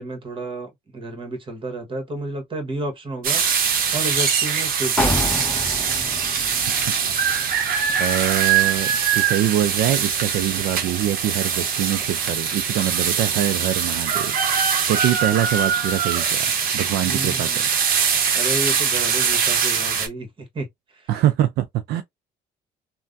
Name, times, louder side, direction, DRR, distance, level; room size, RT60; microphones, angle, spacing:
voice 1, 0.0-3.4 3.9-5.3 17.0-17.7 18.3-21.1, right 2 dB, 30° right, 1.3 m, -31 dB
sound 1, 3.2-20.1, right 7 dB, 60° right, 0.8 m, -22 dB
sound 2, 5.0-8.7 9.1-9.2, left 1 dB, 10° left, 0.9 m, -29 dB
voice 2, 6.7-16.4 16.7-17.6 21.1-22.0, right 12 dB, 75° right, 0.4 m, -24 dB
3.3 x 2.2 x 2.5 m
cardioid pair, 110°, 17 cm